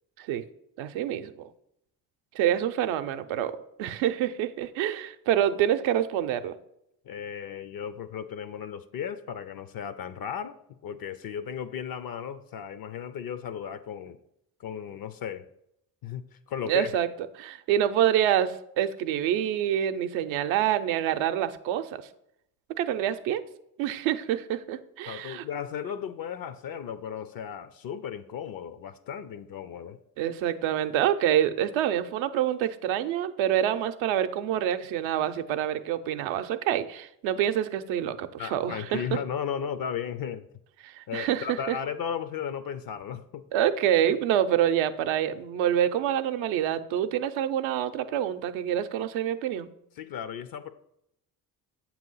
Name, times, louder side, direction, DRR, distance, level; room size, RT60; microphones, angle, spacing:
voice 1, 0.8-1.5 2.3-6.5 16.7-17.1 17.4-22.0 22.8-23.4 23.8-25.4 30.2-39.0 40.8-41.8 43.5-49.7, right 10 dB, 75° right, 9 dB, 0.6 m, -27 dB
voice 2, 7.0-14.2 14.6-15.5 16.0-16.9 25.1-30.0 38.4-40.5 41.1-43.4 50.0-50.7, left 8 dB, 50° left, 13 dB, 0.5 m, -35 dB
7.5 x 3.0 x 5.5 m, 0.79 s
hypercardioid pair, 60°, 47 cm